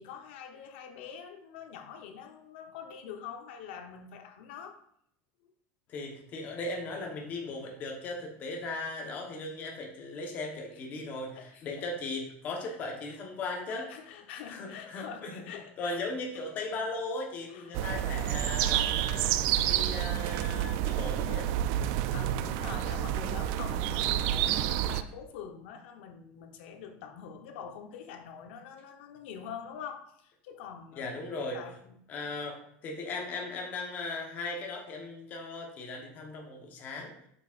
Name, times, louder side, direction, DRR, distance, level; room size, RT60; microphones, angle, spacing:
voice 1, 0.0-4.8 11.4-11.8 12.7-12.8 13.1-13.2 13.7-16.0 16.3-16.4 17.5-18.0 22.1-31.1 31.5-31.9, left 7 dB, 70° left, 6 dB, 1.0 m, -45 dB
voice 2, 5.9-13.9 14.5-15.4 15.8-19.4 19.6-21.5 31.0-31.6 32.1-37.1, left 2 dB, 30° left, 1 dB, 1.1 m, -37 dB
sound 1, 17.7-25.0, right 11 dB, 50° right, 0.3 m, -29 dB
8.1 x 6.0 x 2.5 m, 0.71 s
supercardioid pair, 170°, 6 cm